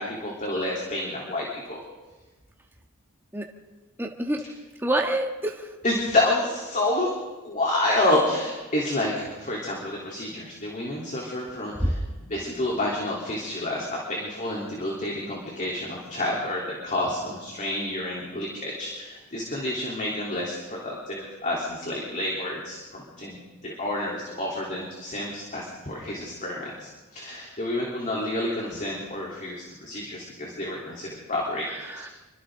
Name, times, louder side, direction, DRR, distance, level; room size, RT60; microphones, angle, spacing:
voice 1, 0.0-1.8 5.8-7.1 7.4-32.1, left 1 dB, 35° left, -3 dB, 3.8 m, -29 dB
voice 2, 4.0-4.4 4.8-5.7 11.8-11.9 31.6-32.1, right 1 dB, 10° right, 1 dB, 1.6 m, -27 dB
27.5 x 25.0 x 4.0 m, 1.2 s
head